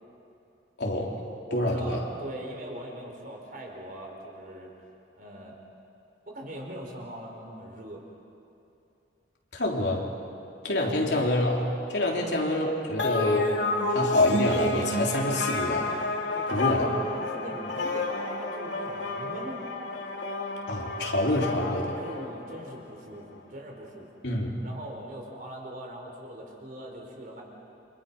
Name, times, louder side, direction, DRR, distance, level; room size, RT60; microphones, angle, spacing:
voice 1, 0.8-1.1 1.5-2.0 9.5-10.1 10.6-13.5 13.9-15.9 16.5-16.9 20.7-22.0 24.2-24.6, left 1 dB, 70° left, -1 dB, 3.5 m, -27 dB
voice 2, 1.5-4.7 5.2-5.6 6.3-8.1 12.1-12.3 16.3-16.7 17.2-19.6 21.9-24.1 24.6-27.4, right 1 dB, 50° right, 0 dB, 4.5 m, -41 dB
sound 1, 13.0-22.8, left 2 dB, 85° left, 2.3 m, -29 dB
29.5 x 26.5 x 5.5 m, 2.8 s
head